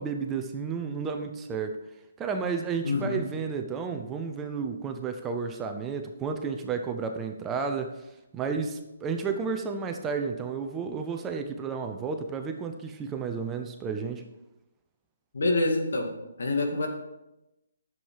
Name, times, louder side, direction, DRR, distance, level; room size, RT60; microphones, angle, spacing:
voice 1, 0.0-1.8 2.2-8.0 8.3-14.2, right 5 dB, 15° right, 5 dB, 0.8 m, -32 dB
voice 2, 2.8-3.2 15.3-16.1 16.4-16.9, left 2 dB, 70° left, 2 dB, 2.2 m, -26 dB
11.0 x 7.3 x 4.8 m, 0.94 s
figure-of-eight pair, 145°, 0 cm